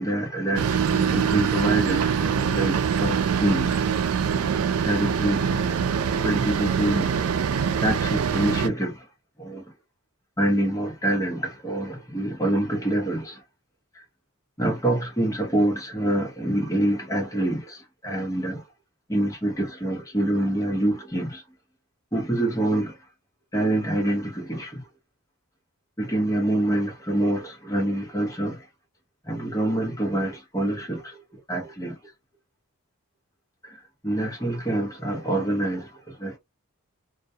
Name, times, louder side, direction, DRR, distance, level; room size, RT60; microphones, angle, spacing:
voice 1, 0.0-3.8 4.8-5.4 5.9-7.2 7.8-9.1 9.4-9.7 10.4-13.4 13.9-14.0 14.6-18.6 19.1-21.4 22.1-23.0 23.5-24.8 26.0-28.6 29.2-31.2 31.5-32.0 33.6-36.4, right 1 dB, 15° left, 0.9 m, -26 dB
sound 1, 0.6-8.7, right 7 dB, 80° right, 0.4 m, -24 dB
2.2 x 2.2 x 2.7 m
head